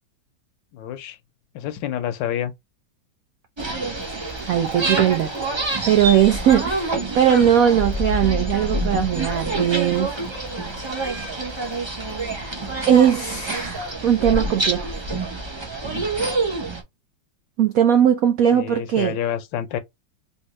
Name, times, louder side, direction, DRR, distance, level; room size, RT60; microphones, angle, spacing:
voice 1, 0.7-1.2 1.5-2.5 18.5-19.8, left 10 dB, 75° left, 1.3 m, -28 dB
sound 1, 3.6-13.9, right 2 dB, 15° right, 0.9 m, -43 dB
sound 2, 3.6-16.8, right 2 dB, 35° right, 0.4 m, -27 dB
voice 2, 4.5-5.3 5.9-10.1 12.9-14.9 17.6-19.2, right 9 dB, 85° right, 0.7 m, -19 dB
3.5 x 2.7 x 3.0 m
omnidirectional pair, 2.1 m